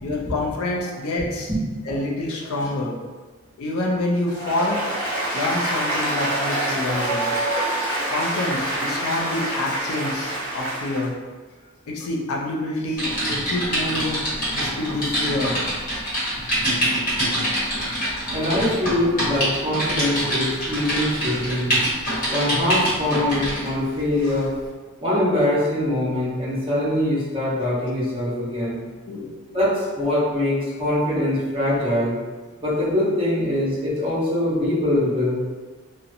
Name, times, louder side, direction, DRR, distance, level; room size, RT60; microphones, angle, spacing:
voice 1, 0.0-1.5 1.9-3.0 3.6-4.8 5.3-7.3 8.1-11.1 11.9-14.3 14.5-15.5 17.0-17.1 29.1-29.3, left 2 dB, 90° left, -2 dB, 0.5 m, -27 dB
Applause, 4.3-11.0, right 1 dB, 10° left, 0.9 m, -26 dB
Typing, 13.0-23.7 24.2-24.4, equal, 40° left, 1.0 m, -25 dB
voice 2, 18.3-21.7 22.3-24.5 25.0-28.8 29.5-32.1 32.6-35.4, left 1 dB, 25° right, -9 dB, 0.9 m, -23 dB
2.8 x 2.1 x 2.5 m, 1.3 s
head